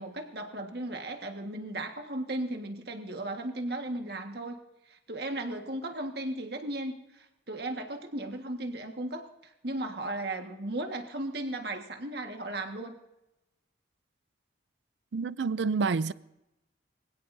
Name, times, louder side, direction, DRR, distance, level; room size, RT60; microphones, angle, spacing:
voice 1, 0.0-4.6 4.9-9.2 9.6-12.9, right 1 dB, 60° right, 1.6 m, -36 dB
voice 2, 15.1-16.1, right 4 dB, 75° right, 0.5 m, -28 dB
24.0 x 16.5 x 2.7 m
head